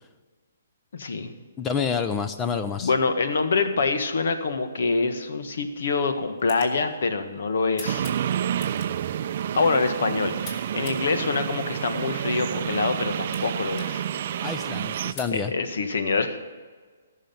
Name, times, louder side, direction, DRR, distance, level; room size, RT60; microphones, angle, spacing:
voice 1, 0.9-1.3 2.8-8.1 9.5-14.1 15.3-16.4, left 4 dB, 70° left, 8 dB, 1.5 m, -25 dB
voice 2, 1.6-2.9 14.4-15.5, left 6 dB, 15° left, 9 dB, 0.5 m, -28 dB
sound 1, 6.2-15.4, left 2 dB, 35° left, 2.8 m, -48 dB
sound 2, 7.8-15.1, right 9 dB, 50° right, 0.5 m, -29 dB
14.0 x 6.5 x 9.2 m, 1.5 s
hypercardioid pair, 150°, 0 cm